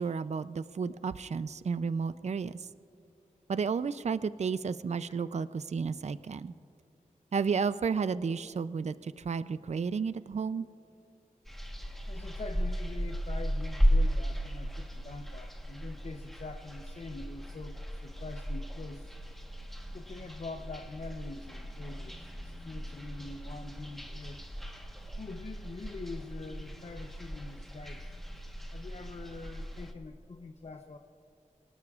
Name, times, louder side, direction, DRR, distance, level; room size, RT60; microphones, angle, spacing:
voice 1, 0.0-2.6 3.5-6.5 7.3-10.7, right 5 dB, 55° right, 14 dB, 0.4 m, -32 dB
sound 1, 11.5-29.9, equal, ahead, 1.2 m, -35 dB
voice 2, 12.0-19.1 19.9-24.4 25.2-28.1 28.7-31.0, left 3 dB, 55° left, 4 dB, 0.7 m, -44 dB
26.0 x 18.5 x 2.4 m, 2.5 s
wide cardioid pair, 95°, 14 cm